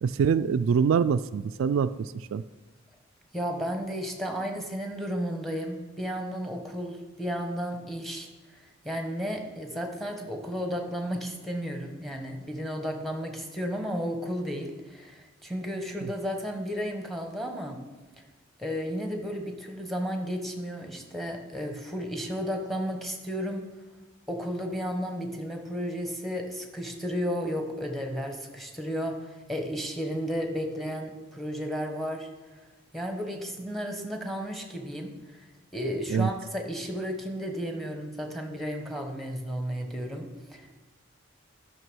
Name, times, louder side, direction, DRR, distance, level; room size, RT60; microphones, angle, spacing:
voice 1, 0.0-2.4 36.1-36.3, right 6 dB, 75° right, 13 dB, 0.3 m, -25 dB
voice 2, 3.3-17.8 18.6-23.6 24.3-32.3 32.9-35.5 35.7-40.8, equal, ahead, 3 dB, 1.2 m, -33 dB
10.5 x 5.9 x 6.2 m, 1.3 s
head